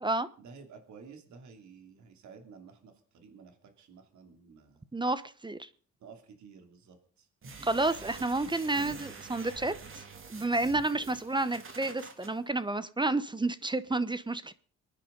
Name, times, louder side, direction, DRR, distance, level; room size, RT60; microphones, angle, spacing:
voice 1, 0.4-4.8 6.0-7.3 10.8-11.2, right 5 dB, 70° right, 5 dB, 3.0 m, -53 dB
voice 2, 4.9-5.7 7.6-9.7 10.3-14.5, right 2 dB, 15° right, 15 dB, 0.9 m, -30 dB
sound 1, 7.4-12.3, right 4 dB, 45° right, 2.7 m, -46 dB
24.5 x 10.0 x 3.9 m, 0.44 s
cardioid pair, 90°, 30 cm